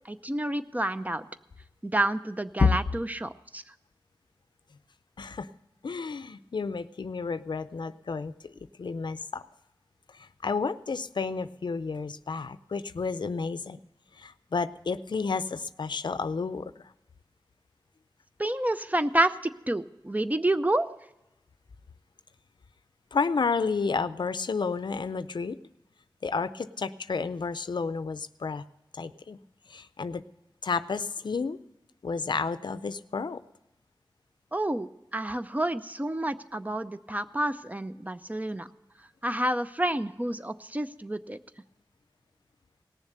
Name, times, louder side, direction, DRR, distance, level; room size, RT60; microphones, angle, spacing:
voice 1, 0.0-1.2 1.8-3.6 18.4-20.9 34.5-38.7 39.2-41.4, right 1 dB, 20° right, 11 dB, 0.6 m, -29 dB
voice 2, 5.2-5.5 5.8-8.5 8.8-9.4 10.1-13.8 14.2-16.7 23.1-25.6 26.2-28.6 28.9-29.4 29.7-30.2 30.6-31.6 32.0-33.4, left 4 dB, 75° left, 14 dB, 0.5 m, -31 dB
18.0 x 7.2 x 6.7 m, 0.96 s
wide cardioid pair, 50°, 8 cm